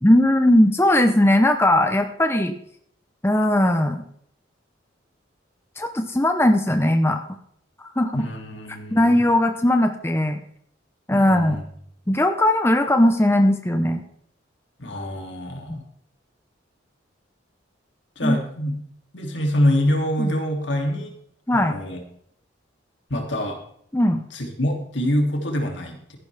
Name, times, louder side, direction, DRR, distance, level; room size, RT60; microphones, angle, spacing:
voice 1, 0.0-2.5 3.2-4.0 5.8-7.2 7.8-8.3 8.9-10.4 11.1-11.6 12.1-14.0 15.7-15.8 18.2-18.4 20.2-20.3 21.5-21.8 23.9-24.2, left 1 dB, 15° left, 6 dB, 0.7 m, -19 dB
voice 2, 8.1-9.2 11.1-11.6 14.8-15.8 18.2-18.7 19.1-21.1 21.5-22.0 23.1-23.6 24.3-26.2, left 1 dB, 70° left, 2 dB, 2.8 m, -25 dB
14.0 x 11.5 x 3.5 m, 0.66 s
head